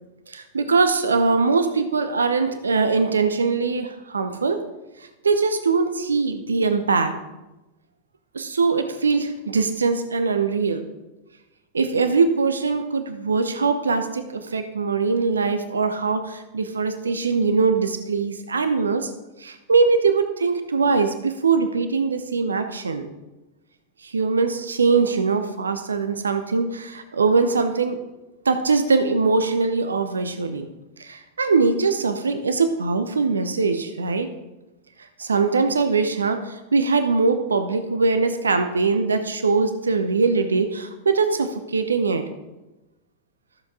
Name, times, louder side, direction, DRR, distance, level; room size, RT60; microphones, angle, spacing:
voice 1, 0.3-4.6 5.2-7.1 8.3-10.9 11.7-19.1 19.4-23.1 24.0-28.0 28.5-30.6 31.0-34.3 35.2-42.2, right 4 dB, 75° right, 9 dB, 0.8 m, -22 dB
14.0 x 7.2 x 3.6 m, 1.0 s
figure-of-eight pair, 90°, 0 cm